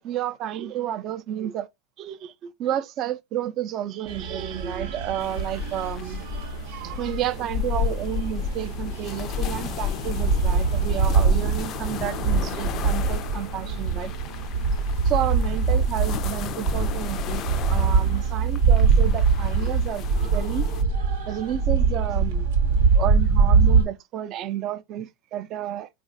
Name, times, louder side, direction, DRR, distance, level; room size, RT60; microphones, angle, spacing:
voice 1, 0.0-1.7 2.0-6.3 6.7-14.1 15.0-20.0 20.3-20.7 21.3-22.5 22.9-25.9, right 11 dB, 45° right, 0.4 m, -31 dB
sound 1, 4.1-23.8, right 5 dB, 75° right, 0.7 m, -23 dB
sound 2, 5.2-20.8, left 10 dB, 45° left, 0.3 m, -34 dB
3.2 x 2.4 x 2.5 m
hypercardioid pair, 105°, 0 cm